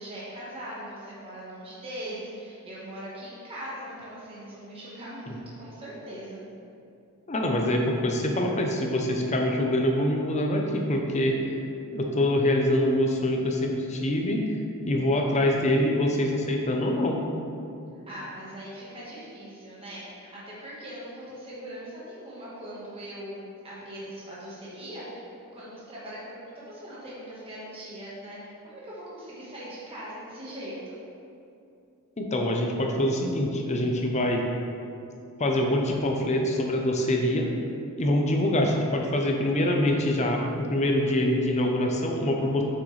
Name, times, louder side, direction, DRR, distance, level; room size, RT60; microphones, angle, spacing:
voice 1, 0.0-6.4 18.1-31.0, right 1 dB, 25° right, -8 dB, 1.5 m, -40 dB
voice 2, 7.3-11.4 11.9-14.4 14.9-17.2 32.2-34.4 35.4-37.5 38.0-42.6, left 1 dB, 30° left, 1 dB, 0.7 m, -25 dB
7.4 x 6.3 x 3.3 m, 2.6 s
head